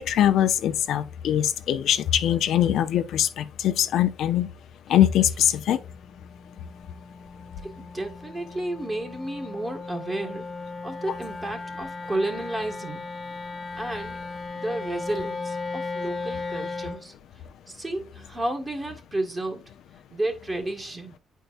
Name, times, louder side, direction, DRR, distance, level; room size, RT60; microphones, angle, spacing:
voice 1, 0.0-4.5 4.9-5.8, left 11 dB, 75° left, 0.6 m, -22 dB
Wind instrument woodwind instrument, 5.5-17.1, left 3 dB, 25° left, 1.2 m, -36 dB
voice 2, 7.6-10.5 10.8-13.1 13.7-14.2 14.5-17.1 17.7-19.6 20.1-21.1, right 1 dB, 20° right, 1.7 m, -32 dB
9.0 x 4.6 x 2.5 m
cardioid pair, 90°, 0 cm